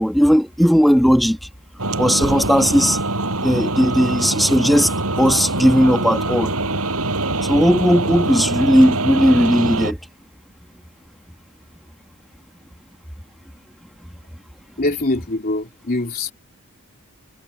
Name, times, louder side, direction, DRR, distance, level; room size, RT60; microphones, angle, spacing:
voice 1, 0.0-1.4 2.0-3.0 3.4-6.5 7.5-10.0, equal, ahead, 2.5 m, -16 dB
sound 1, 1.8-9.9, right 2 dB, 75° right, 6.5 m, -23 dB
voice 2, 14.8-16.3, left 2 dB, 45° left, 3.1 m, -23 dB
head